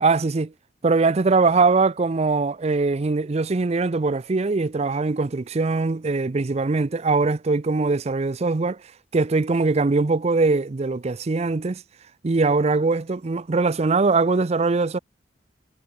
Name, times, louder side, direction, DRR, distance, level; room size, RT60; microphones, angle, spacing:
voice 1, 0.0-0.5 0.8-8.8 9.1-11.8 12.2-15.0, right 3 dB, 35° right, 0.5 m, -21 dB
head